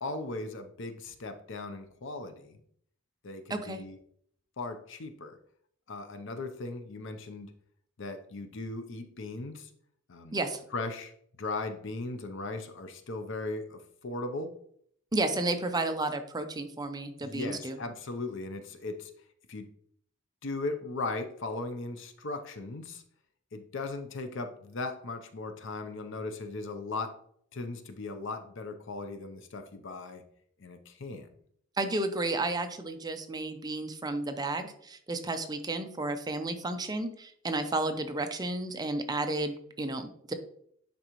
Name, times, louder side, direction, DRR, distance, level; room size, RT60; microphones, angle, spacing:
voice 1, 0.0-2.6 3.2-4.0 4.6-5.4 5.9-7.5 8.0-9.7 10.1-10.4 10.7-11.1 11.4-14.5 17.2-19.1 19.5-19.7 20.4-23.0 23.5-27.2 27.5-30.2 30.6-31.3, left 3 dB, 65° left, 7 dB, 0.7 m, -38 dB
voice 2, 3.5-3.8 10.3-10.6 15.1-17.8 31.8-40.3, right 2 dB, 20° right, 7 dB, 0.6 m, -32 dB
10.0 x 3.9 x 3.0 m, 0.66 s
head